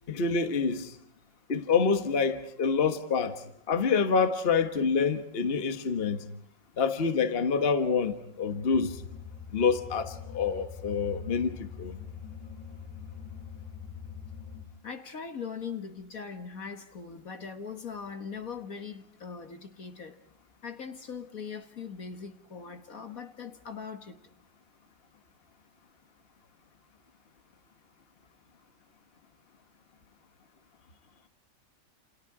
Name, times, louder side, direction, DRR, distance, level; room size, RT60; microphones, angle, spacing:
voice 1, 0.1-1.0 1.5-6.3 6.8-9.0 9.5-12.0, left 5 dB, 35° left, 1.5 m, -27 dB
sound 1, 8.7-14.6, left 7 dB, 20° right, 3.9 m, -43 dB
voice 2, 14.8-20.2 20.6-24.2, left 6 dB, 50° left, 1.7 m, -40 dB
29.0 x 28.5 x 4.8 m
omnidirectional pair, 1.9 m